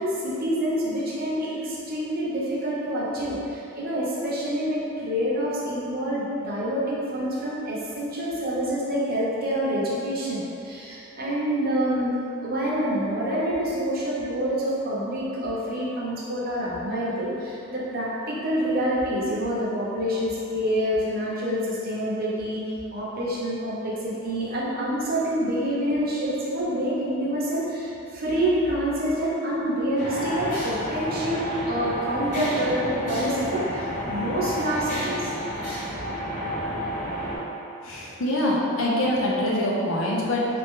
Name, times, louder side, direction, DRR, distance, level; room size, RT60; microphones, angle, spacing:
voice 1, 0.0-35.3, equal, 45° right, -6 dB, 0.7 m, -27 dB
sound 1, 30.0-37.4, equal, 35° left, 1.0 m, -30 dB
voice 2, 37.8-40.5, left 1 dB, 75° left, -4 dB, 0.7 m, -24 dB
3.9 x 2.6 x 3.6 m, 2.8 s
head